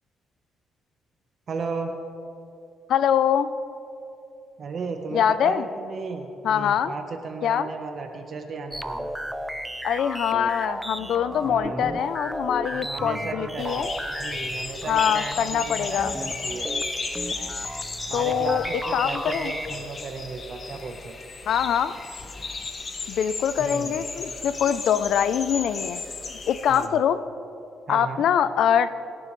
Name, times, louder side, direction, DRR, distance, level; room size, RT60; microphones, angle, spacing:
voice 1, 1.5-1.9 4.6-9.2 11.4-12.0 12.7-16.7 18.1-21.2 23.6-24.0 26.7-27.0 27.9-28.2, right 4 dB, 50° right, 4 dB, 1.1 m, -34 dB
voice 2, 2.9-3.5 5.1-5.6 6.4-6.9 7.4-7.7 9.8-13.9 14.9-16.1 18.1-18.6 18.9-19.5 21.5-21.9 23.1-26.0 26.5-27.2 27.9-28.9, left 9 dB, 70° left, 14 dB, 0.5 m, -23 dB
sound 1, 8.7-19.9, equal, 5° right, 0.6 m, -34 dB
sound 2, 13.6-26.9, left 4 dB, 40° left, 1.2 m, -35 dB
23.5 x 10.5 x 3.3 m, 2.8 s
cardioid pair, 90°, 0 cm